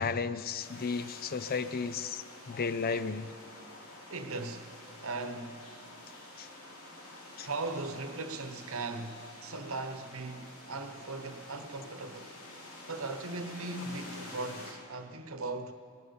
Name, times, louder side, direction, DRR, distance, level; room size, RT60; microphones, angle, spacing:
voice 1, 0.0-3.3 6.4-6.5 7.4-7.5, left 5 dB, 40° left, 0.5 m, -34 dB
sound 1, 0.6-14.7, left 1 dB, 85° left, 3.2 m, -49 dB
voice 2, 4.1-4.7 5.0-5.7 7.4-12.4 12.9-15.7, right 3 dB, 65° right, 1.1 m, -38 dB
19.0 x 10.5 x 7.0 m
head